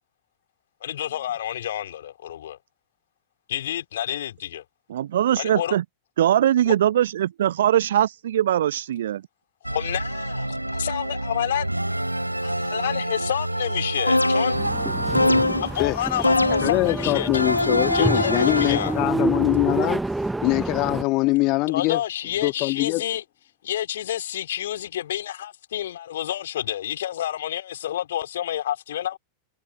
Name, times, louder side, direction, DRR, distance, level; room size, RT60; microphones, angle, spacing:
voice 1, 0.8-2.6 3.5-4.6 5.4-5.8 6.7-6.8 9.6-11.7 12.4-14.6 15.6-17.4 17.9-19.0 21.7-23.2 23.6-29.2, left 11 dB, 60° left, 3.8 m, -29 dB
voice 2, 4.9-5.8 6.2-9.2, right 11 dB, 60° right, 0.7 m, -21 dB
sound 1, 9.6-15.4, right 1 dB, 85° right, 2.6 m, -28 dB
sound 2, 14.1-14.7 15.1-15.8 16.2-16.9 17.3-18.9, left 2 dB, 85° left, 1.2 m, -22 dB
sound 3, 14.5-21.0, right 2 dB, 5° right, 0.4 m, -28 dB
voice 3, 16.6-20.0 20.4-22.0 22.4-23.0, left 22 dB, 40° left, 2.0 m, -23 dB
figure-of-eight pair, 90°, 0 cm